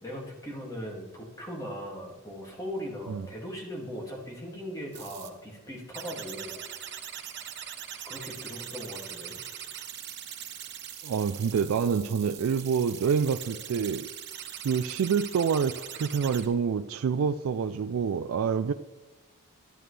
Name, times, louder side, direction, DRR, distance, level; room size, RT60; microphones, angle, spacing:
voice 1, 0.0-6.6 8.0-9.4, equal, 15° left, -2 dB, 2.3 m, -39 dB
sound 1, 4.9-5.3 5.9-16.5, right 10 dB, 55° right, 1.0 m, -41 dB
voice 2, 11.0-14.1 14.6-18.7, right 6 dB, 75° right, 10 dB, 0.4 m, -27 dB
11.0 x 10.5 x 3.3 m, 1.2 s
head